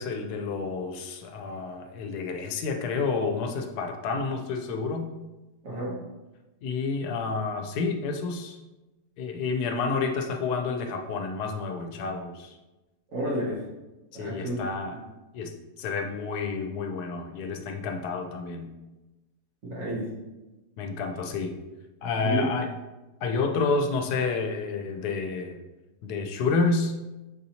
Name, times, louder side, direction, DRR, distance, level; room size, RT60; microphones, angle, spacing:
voice 1, 0.0-5.1 6.6-8.6 9.2-12.6 14.1-15.0 15.3-15.5 15.8-18.7 20.8-21.5 22.0-22.7 23.2-25.6 26.0-26.9, left 4 dB, 80° left, 4 dB, 1.1 m, -29 dB
voice 2, 5.6-6.0 13.1-13.6 14.1-14.6 19.6-20.1 22.2-22.4, right 1 dB, 60° right, -5 dB, 1.3 m, -30 dB
6.6 x 2.7 x 2.8 m, 1.1 s
omnidirectional pair, 1.7 m